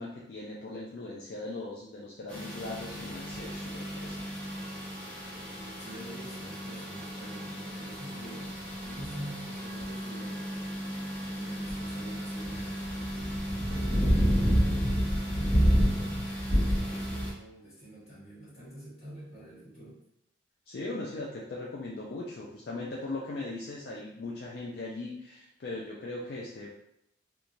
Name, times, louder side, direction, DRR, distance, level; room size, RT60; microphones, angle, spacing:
voice 1, 0.0-4.3 20.7-26.7, left 2 dB, 55° left, -4 dB, 0.4 m, -39 dB
sound 1, 2.3-17.3, equal, 5° left, 0.7 m, -30 dB
voice 2, 5.8-8.5 8.8-10.6 11.3-15.7 16.6-20.0, right 1 dB, 35° left, -9 dB, 1.3 m, -46 dB
2.9 x 2.3 x 2.6 m, 0.77 s
head